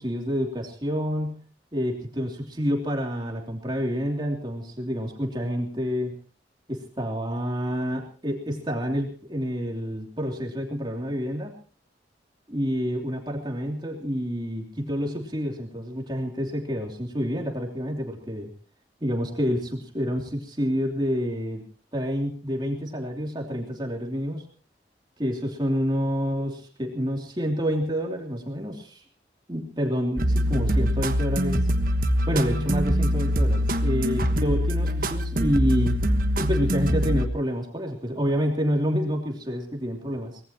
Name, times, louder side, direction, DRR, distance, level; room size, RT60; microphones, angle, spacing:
voice 1, 0.0-1.4 1.7-6.1 6.7-11.5 12.5-18.5 19.0-21.6 21.9-24.4 25.2-29.0 29.5-31.7 32.3-36.0 36.4-40.4, equal, 25° right, 1 dB, 3.0 m, -28 dB
sound 1, 30.2-37.3, equal, 50° right, 1.3 m, -23 dB
24.5 x 19.0 x 3.0 m, 0.39 s
head